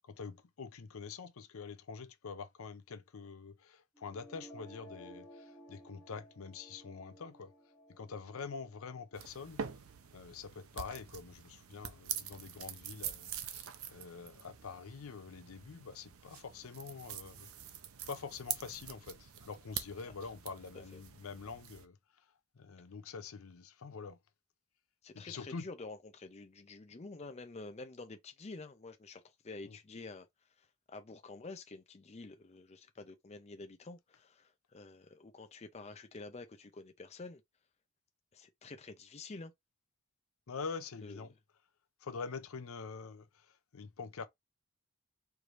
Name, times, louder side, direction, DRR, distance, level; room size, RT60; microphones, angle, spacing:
voice 1, 0.1-7.5 7.9-9.6 10.1-17.5 18.1-22.0 22.6-24.2 25.1-25.7 29.6-29.8 40.5-41.3 42.0-44.3, left 5 dB, 75° left, 0.6 m, -45 dB
sound 1, 4.0-9.9, equal, 10° left, 1.5 m, -56 dB
sound 2, 9.1-21.8, right 9 dB, 80° right, 0.6 m, -45 dB
voice 2, 25.0-30.3 30.6-37.4 38.3-39.5 41.0-41.2, left 3 dB, 30° left, 0.5 m, -49 dB
4.6 x 3.3 x 2.5 m
head